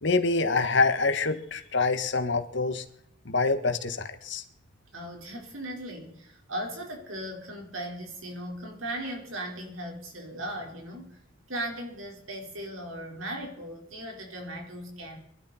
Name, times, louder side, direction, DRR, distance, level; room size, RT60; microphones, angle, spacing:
voice 1, 0.0-2.8 3.2-4.4, left 3 dB, 60° left, 8 dB, 1.5 m, -26 dB
voice 2, 4.9-11.2 11.5-15.2, right 1 dB, 85° right, 1 dB, 4.6 m, -37 dB
24.0 x 12.0 x 4.4 m, 0.70 s
head